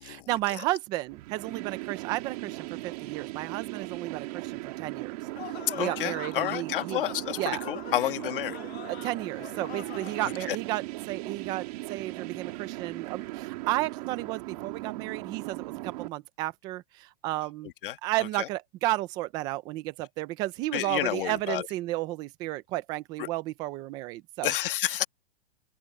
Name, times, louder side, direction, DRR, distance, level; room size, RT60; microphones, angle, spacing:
voice 1, 0.3-5.1 5.7-7.0 7.4-7.6 8.9-17.7 18.0-24.5, right 17 dB, 15° right, 0.4 m, -33 dB
sound 1, 1.1-16.1, right 21 dB, 40° right, 2.3 m, -38 dB
sound 2, 5.4-10.5, left 11 dB, 90° left, 1.7 m, -43 dB
voice 2, 5.8-8.6 10.2-10.6 17.8-18.0 18.4-18.5 20.7-21.7 23.2-23.3 24.4-25.0, left 13 dB, 60° left, 1.7 m, -30 dB
open air
supercardioid pair, 170°, 31 cm